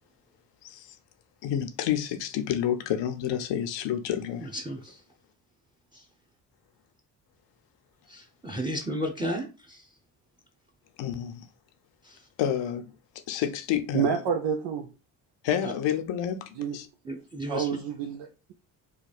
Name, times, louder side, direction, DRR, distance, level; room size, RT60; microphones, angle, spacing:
voice 1, 0.6-1.0 1.4-4.5 11.0-11.5 12.4-12.9 13.3-14.2 15.4-16.9, left 10 dB, 75° left, 0.7 m, -29 dB
voice 2, 4.4-5.0 5.9-6.0 8.1-9.9 12.0-12.2 15.6-15.7 17.0-17.7, equal, 10° right, 0.9 m, -34 dB
voice 3, 13.9-14.9 16.6-16.8 17.5-18.5, right 7 dB, 75° right, 0.7 m, -28 dB
3.2 x 2.3 x 4.1 m
supercardioid pair, 55°, 44 cm